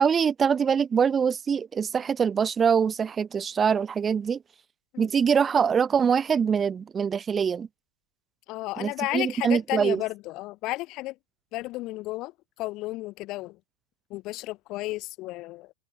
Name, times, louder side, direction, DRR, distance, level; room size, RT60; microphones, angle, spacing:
voice 1, 0.0-4.4 5.0-7.7 8.8-10.0, right 7 dB, 20° right, 2.5 m, -24 dB
voice 2, 8.5-11.2 11.5-12.3 12.6-13.6 14.1-15.7, left 19 dB, 40° left, 2.5 m, -33 dB
figure-of-eight pair, 90°, 0 cm